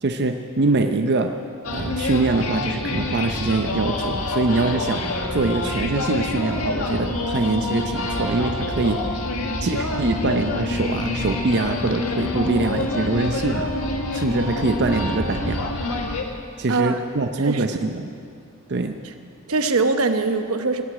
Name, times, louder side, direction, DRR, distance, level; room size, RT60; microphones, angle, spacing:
voice 1, 0.0-1.3 1.7-5.0 5.3-9.0 9.6-13.7 14.1-15.7 16.6-18.1 18.7-19.0, right 3 dB, 50° right, 6 dB, 0.6 m, -23 dB
sound 1, 1.6-16.2, left 2 dB, 85° left, 1.5 m, -26 dB
voice 2, 16.7-17.0 17.4-17.6 19.5-20.9, right 3 dB, 80° right, 8 dB, 1.0 m, -22 dB
18.0 x 7.9 x 8.6 m, 2.4 s
head